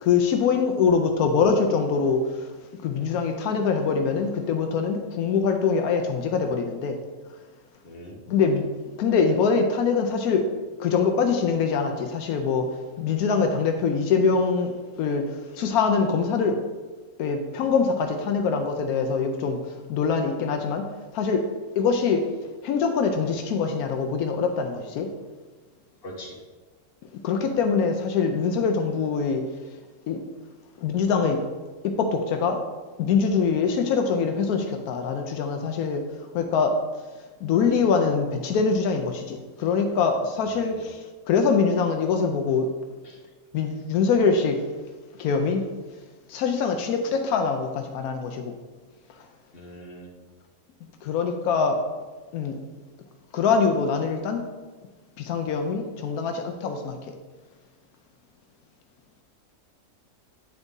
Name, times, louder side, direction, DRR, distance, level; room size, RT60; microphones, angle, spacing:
voice 1, 0.0-2.5 2.8-7.0 8.3-10.5 10.8-12.7 13.0-16.6 17.2-20.9 21.1-21.4 21.8-22.3 22.6-25.1 27.2-29.4 30.1-30.2 30.8-31.4 32.0-32.6 33.0-36.8 37.4-42.7 43.5-44.6 45.2-45.6 46.3-48.5 51.0-51.8 52.3-52.6 53.3-54.4 55.2-57.1, left 5 dB, 85° left, 4 dB, 1.1 m, -24 dB
voice 2, 7.8-8.2 26.0-26.4 43.0-43.2 49.5-50.1, equal, 40° left, -2 dB, 1.5 m, -41 dB
9.0 x 3.9 x 3.6 m, 1.3 s
omnidirectional pair, 1.5 m